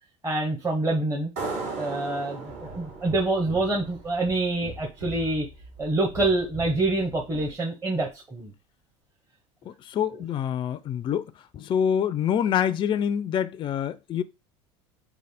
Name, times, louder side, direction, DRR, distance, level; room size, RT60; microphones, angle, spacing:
voice 1, 0.2-1.3 1.8-5.5 5.8-8.5 10.1-10.2, right 2 dB, 20° right, 0.9 m, -26 dB
sound 1, 1.4-4.7, right 3 dB, 45° right, 1.4 m, -36 dB
sound 2, 2.5-7.5, right 3 dB, 80° right, 1.3 m, -43 dB
voice 2, 9.7-11.3 11.5-14.2, left 8 dB, 30° left, 0.3 m, -26 dB
3.2 x 2.2 x 4.2 m
hypercardioid pair, 80°, 16 cm